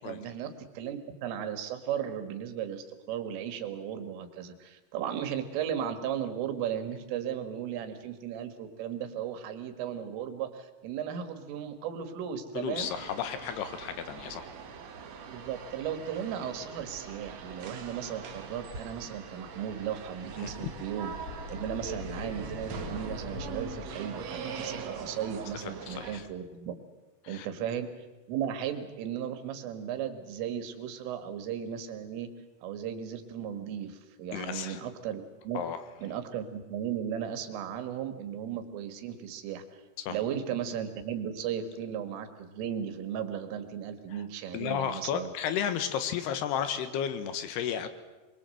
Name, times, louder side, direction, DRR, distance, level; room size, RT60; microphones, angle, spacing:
voice 1, 0.0-12.9 15.3-21.1 21.5-26.7 27.3-27.9 28.3-32.3 32.6-35.6 36.0-39.6 40.1-45.3, right 9 dB, 85° right, 8 dB, 4.4 m, -36 dB
voice 2, 12.5-14.5 20.4-20.5 25.9-26.2 27.2-27.5 34.3-34.8 35.5-35.8 40.0-40.2 44.5-47.9, left 8 dB, 65° left, 10 dB, 3.0 m, -33 dB
sound 1, 12.8-26.2, right 5 dB, 60° right, 1.8 m, -42 dB
sound 2, 20.0-23.8, left 5 dB, 45° left, 7.1 m, -44 dB
24.0 x 22.5 x 7.8 m, 1.1 s
omnidirectional pair, 5.6 m